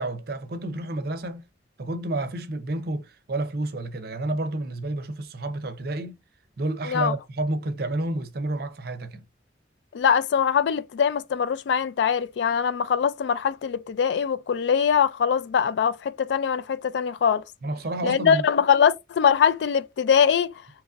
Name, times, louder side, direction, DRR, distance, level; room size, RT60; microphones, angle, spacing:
voice 1, 0.0-1.5 1.8-6.2 6.6-9.2 17.6-18.4, right 2 dB, 55° right, 0.6 m, -30 dB
voice 2, 9.9-17.4 18.0-20.5, left 7 dB, 65° left, 0.3 m, -22 dB
2.9 x 2.6 x 2.4 m
head